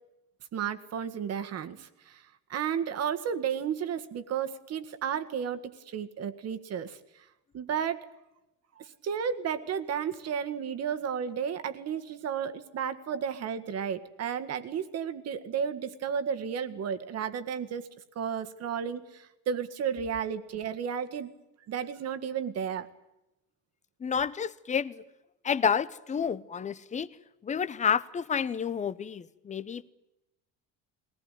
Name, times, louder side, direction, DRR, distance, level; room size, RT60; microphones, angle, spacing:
voice 1, 0.5-2.2 2.5-7.0 7.5-8.1 8.8-17.9 18.2-21.3 21.7-22.9, right 7 dB, 45° right, 1.8 m, -33 dB
voice 2, 24.0-25.0 25.4-27.1 27.4-29.9, left 7 dB, 20° left, 0.8 m, -30 dB
22.0 x 18.5 x 9.1 m
cardioid pair, 160°, 35 cm